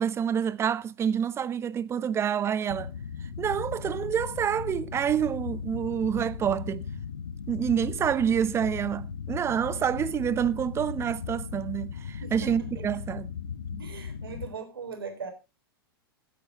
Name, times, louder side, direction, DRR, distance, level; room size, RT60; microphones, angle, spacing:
voice 1, 0.0-2.9 3.4-6.8 7.5-13.3 13.7-13.8, right 8 dB, 20° right, 0.8 m, -27 dB
sound 1, 2.7-14.5, left 6 dB, 75° left, 1.8 m, -37 dB
voice 2, 12.2-12.7 13.0-13.1 13.8-15.3, right 5 dB, 70° right, 4.2 m, -39 dB
15.5 x 8.9 x 3.9 m
figure-of-eight pair, 100°, 12 cm